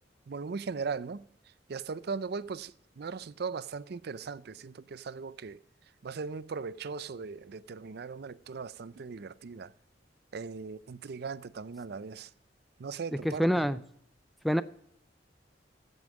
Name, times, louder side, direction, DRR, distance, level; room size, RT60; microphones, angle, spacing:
voice 1, 0.3-1.2 1.7-5.6 6.0-9.7 10.3-12.3 12.8-13.6, right 5 dB, 60° right, 0.5 m, -38 dB
voice 2, 13.2-13.8 14.4-14.6, equal, ahead, 0.4 m, -26 dB
15.5 x 5.4 x 6.2 m
head